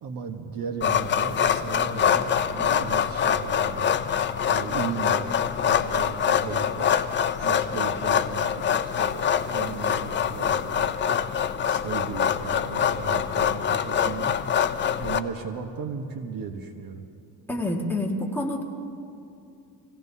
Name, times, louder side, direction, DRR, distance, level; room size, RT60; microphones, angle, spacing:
voice 1, 0.0-3.9 4.4-5.3 5.6-7.0 7.4-11.0 11.7-14.4 15.0-17.1, right 6 dB, 50° right, 6 dB, 1.2 m, -36 dB
sound 1, 0.8-15.2, left 8 dB, 25° left, 0.5 m, -25 dB
voice 2, 17.5-18.6, left 1 dB, 5° left, -1 dB, 1.7 m, -27 dB
25.5 x 17.0 x 2.8 m, 2.6 s
cardioid pair, 115°, 45 cm